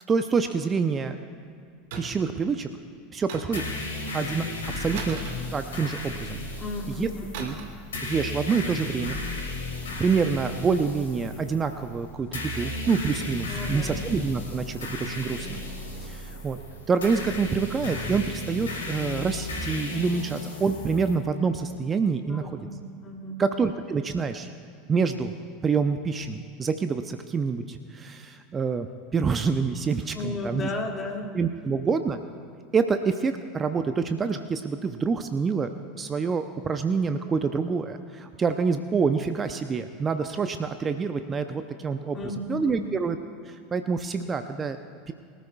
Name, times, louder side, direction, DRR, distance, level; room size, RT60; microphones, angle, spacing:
voice 1, 0.1-1.2 2.0-2.7 3.1-3.6 4.1-5.2 5.5-6.4 6.9-7.1 7.4-7.6 8.0-9.2 10.0-15.6 16.0-16.6 16.9-22.7 23.4-24.5 24.9-25.3 25.6-30.7 31.3-32.2 32.7-35.7 36.0-42.2 42.5-43.2 43.5-44.8 45.1-45.2, right 5 dB, 25° right, 9 dB, 0.7 m, -27 dB
sound 1, 1.9-2.4 3.3-4.1 4.9-6.1 7.3-8.3, right 4 dB, 60° right, 1.9 m, -38 dB
sound 2, 3.5-21.1, left 2 dB, 75° left, 3.0 m, -35 dB
voice 2, 6.6-7.5 13.5-14.0 22.3-23.4 30.1-31.4 42.1-42.9, left 2 dB, 30° left, 1 dB, 2.3 m, -34 dB
24.0 x 13.5 x 2.4 m, 2.3 s
figure-of-eight pair, 80°, 0 cm